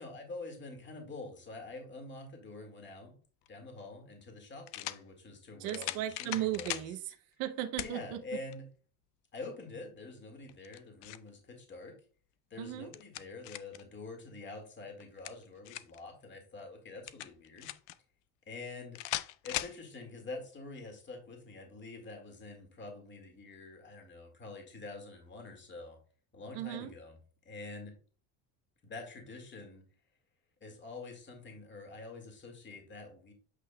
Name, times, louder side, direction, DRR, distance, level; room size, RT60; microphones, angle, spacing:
voice 1, 0.0-3.2 3.5-6.8 7.8-8.7 9.3-12.0 12.5-17.7 18.5-19.0 19.4-26.0 26.3-27.2 27.4-27.9 28.8-29.8 30.6-33.3, left 3 dB, 25° left, 1.9 m, -46 dB
sound 1, 3.4-3.5 4.7-5.0 5.7-6.9 7.8-8.0 8.5-8.6 10.5-11.3 12.6-13.8 15.0-16.0 17.1-18.0 18.9-19.8, left 15 dB, 85° left, 0.6 m, -39 dB
voice 2, 5.6-8.2 12.6-12.9 26.5-26.9, right 12 dB, 75° right, 0.8 m, -36 dB
8.3 x 5.4 x 2.2 m
cardioid pair, 130°, 40 cm